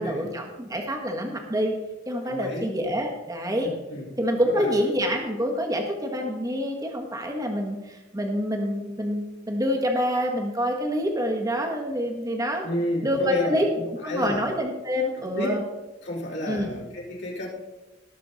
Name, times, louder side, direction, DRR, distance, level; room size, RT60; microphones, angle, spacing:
voice 1, 0.0-1.7 2.1-3.7 4.2-12.6 13.0-13.7 14.0-15.6 16.5-16.7, equal, 20° right, 1 dB, 1.6 m, -27 dB
voice 2, 2.2-2.7 3.9-4.1 4.5-4.7 12.6-13.6 14.0-14.4 15.1-15.5 16.0-17.5, left 1 dB, 65° left, -5 dB, 4.1 m, -30 dB
19.0 x 6.7 x 4.1 m, 1.1 s
head